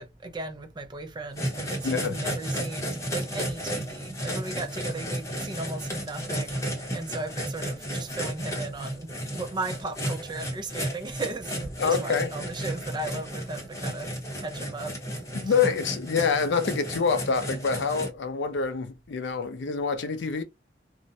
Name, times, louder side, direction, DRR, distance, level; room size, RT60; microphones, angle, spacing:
voice 1, 0.0-14.1 14.4-15.5, right 3 dB, 25° right, 0.4 m, -36 dB
sound 1, 1.3-18.1, equal, 20° left, 0.8 m, -33 dB
voice 2, 1.8-2.2 11.8-12.3 15.3-20.4, left 5 dB, 85° left, 0.4 m, -26 dB
2.4 x 2.0 x 2.6 m
head